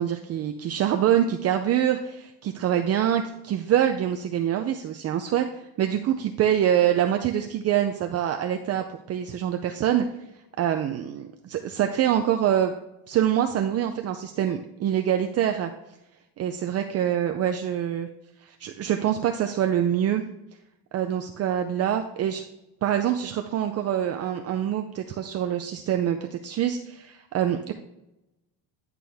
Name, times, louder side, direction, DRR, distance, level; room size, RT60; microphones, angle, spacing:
voice 1, 0.0-5.5 5.8-10.1 10.6-12.7 13.1-15.7 16.4-18.1 18.4-20.2 20.9-22.4 22.8-27.7, right 10 dB, 40° right, 5 dB, 0.5 m, -25 dB
10.5 x 6.0 x 3.5 m, 0.88 s
cardioid pair, 135°, 41 cm